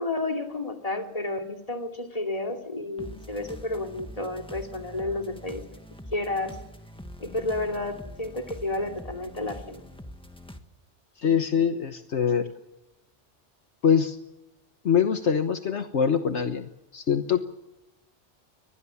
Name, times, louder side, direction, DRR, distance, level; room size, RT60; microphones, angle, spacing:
voice 1, 0.0-5.6 6.1-6.6 7.2-9.8, left 2 dB, 30° left, 3 dB, 2.9 m, -31 dB
sound 1, 3.0-10.6, equal, 5° left, 1.6 m, -44 dB
voice 2, 11.2-12.5 13.8-14.2 14.8-17.4, left 7 dB, 70° left, 7 dB, 1.5 m, -24 dB
23.5 x 20.0 x 7.2 m, 0.96 s
omnidirectional pair, 1.2 m